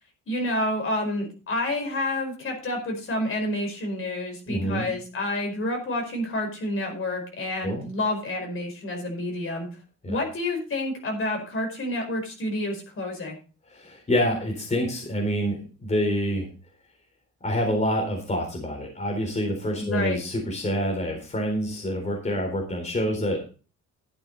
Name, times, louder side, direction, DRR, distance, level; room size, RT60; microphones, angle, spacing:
voice 1, 0.3-9.7 10.0-13.4 19.8-20.2, left 1 dB, 45° left, 3 dB, 4.9 m, -29 dB
voice 2, 4.5-4.9 7.6-7.8 10.0-10.2 13.7-16.5 17.4-23.5, equal, 25° left, 0 dB, 4.1 m, -27 dB
12.0 x 8.8 x 4.0 m, 0.35 s
cardioid pair, 110°, 30 cm